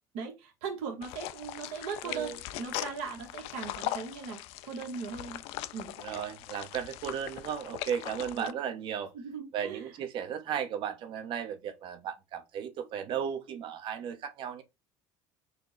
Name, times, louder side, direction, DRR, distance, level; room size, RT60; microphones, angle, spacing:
voice 1, 0.1-5.4 5.7-5.9 8.3-8.6 9.1-9.9, right 5 dB, 75° right, 1.0 m, -39 dB
sound 1, 1.0-8.5, left 14 dB, 70° left, 0.4 m, -40 dB
voice 2, 2.0-2.4 6.0-9.1 9.5-14.6, right 8 dB, 55° right, 0.9 m, -35 dB
4.3 x 2.1 x 3.8 m
supercardioid pair, 95°, 10 cm